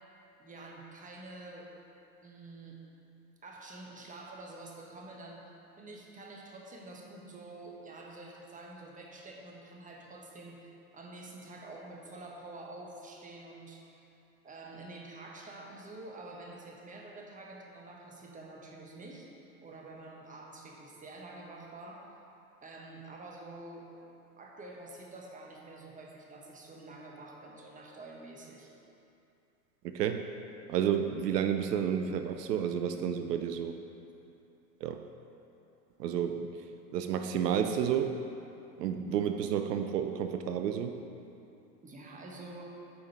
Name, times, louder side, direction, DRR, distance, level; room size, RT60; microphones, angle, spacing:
voice 1, 0.4-1.7 2.2-2.8 3.4-5.4 5.8-14.0 14.4-19.3 19.6-22.1 22.6-28.7 41.8-42.8, right 2 dB, 15° right, -1 dB, 1.2 m, -48 dB
voice 2, 29.8-30.3 30.7-33.8 34.8-35.0 36.0-36.5 36.9-38.2 38.8-41.0, right 8 dB, 80° right, 7 dB, 0.6 m, -31 dB
8.7 x 5.2 x 4.2 m, 2.8 s
hypercardioid pair, 95°, 48 cm